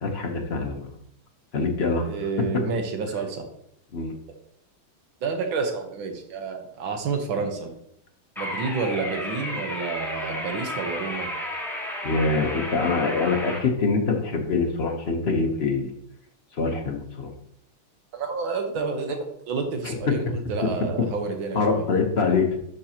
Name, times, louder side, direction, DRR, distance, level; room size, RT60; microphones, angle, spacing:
voice 1, 0.0-0.9 1.5-2.1 3.9-4.1 12.0-15.9 16.5-17.3 19.8-19.9 21.5-22.6, left 4 dB, 45° left, 2 dB, 0.8 m, -24 dB
voice 2, 2.0-3.4 5.2-7.7 8.4-11.3 18.1-19.2 19.5-21.9, right 4 dB, 75° right, 4 dB, 1.8 m, -29 dB
sound 1, 8.4-13.6, left 1 dB, ahead, 1.4 m, -32 dB
11.5 x 4.6 x 2.9 m, 0.74 s
omnidirectional pair, 2.3 m